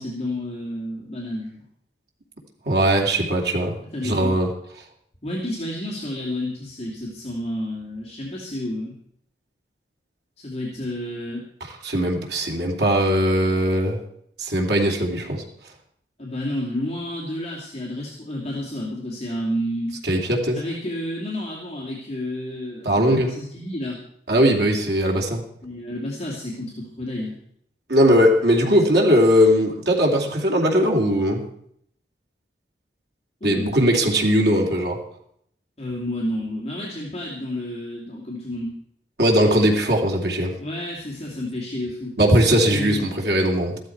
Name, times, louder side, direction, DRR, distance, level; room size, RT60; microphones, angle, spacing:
voice 1, 0.0-1.6 3.9-4.4 5.2-9.0 10.4-11.4 16.2-20.0 20.5-24.0 25.6-27.4 33.4-33.8 35.8-38.8 40.6-42.4 42.7-43.1, left 1 dB, 35° left, -4 dB, 2.7 m, -30 dB
voice 2, 2.7-3.7 4.0-4.5 11.8-14.0 14.4-15.4 20.1-20.6 22.8-23.3 24.3-25.4 27.9-31.4 33.4-35.0 39.2-40.5 42.2-43.8, equal, 65° right, 0 dB, 2.8 m, -19 dB
14.5 x 13.0 x 4.6 m, 0.70 s
head